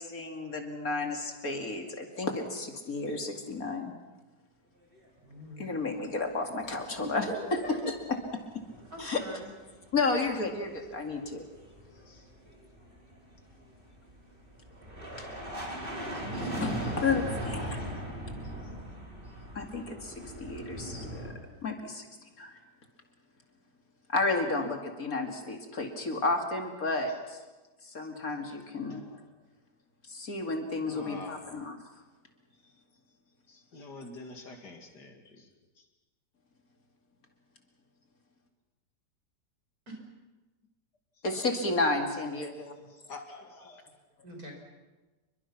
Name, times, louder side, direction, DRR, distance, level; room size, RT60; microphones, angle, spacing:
voice 1, 0.0-3.9 5.6-7.2 9.0-9.2 9.9-11.4 15.2-15.3 16.6-18.0 19.5-20.1 20.4-21.3 21.6-22.0 22.4-22.5 24.1-27.4 27.8-29.0 30.1-31.7 41.2-42.7, left 3 dB, 55° left, 4 dB, 2.8 m, -32 dB
voice 2, 5.2-5.8 7.0-7.7 8.9-9.5 39.9-40.0 44.2-44.5, right 1 dB, 55° right, 1 dB, 6.1 m, -41 dB
sound 1, 7.3-8.1 8.4-9.3 9.5-21.3, equal, 30° right, 5.0 m, -39 dB
voice 3, 11.8-12.3 16.1-16.9 18.6-18.7 27.8-28.0 28.8-29.2 30.9-31.6 32.6-32.7 33.5-35.5 35.8-35.9 41.3-41.5 42.9-43.8, left 3 dB, 70° left, 4 dB, 3.1 m, -48 dB
28.5 x 23.0 x 6.0 m, 1.2 s
omnidirectional pair, 1.9 m